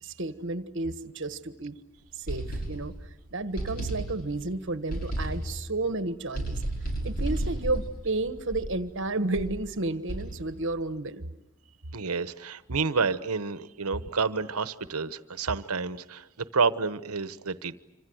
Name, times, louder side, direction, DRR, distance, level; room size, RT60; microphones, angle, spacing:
voice 1, 0.0-1.8 2.2-2.9 3.3-6.6 7.0-11.3, right 2 dB, 55° right, 11 dB, 1.4 m, -32 dB
sound 1, 2.3-3.1 3.6-4.5 4.9-5.7 6.3-8.9 9.3-9.7 10.1-10.6, right 1 dB, 40° left, 5.8 m, -33 dB
voice 2, 11.9-16.3 16.5-17.8, right 4 dB, 80° right, 13 dB, 1.1 m, -29 dB
27.0 x 26.0 x 8.0 m, 0.92 s
head